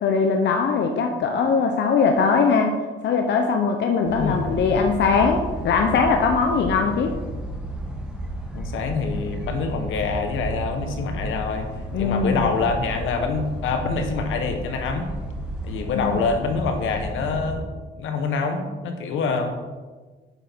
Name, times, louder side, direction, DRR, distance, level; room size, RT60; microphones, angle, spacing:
voice 1, 0.0-2.8 3.0-7.1 11.9-12.5 15.8-16.2, left 5 dB, 65° left, 3 dB, 0.8 m, -21 dB
sound 1, 4.0-17.5, right 1 dB, 5° right, 1.9 m, -32 dB
voice 2, 4.1-4.7 8.5-11.7 12.0-15.1 15.6-17.6 17.9-19.5, left 4 dB, 85° left, 5 dB, 1.3 m, -26 dB
8.9 x 6.2 x 4.6 m, 1.3 s
cardioid pair, 90°, 20 cm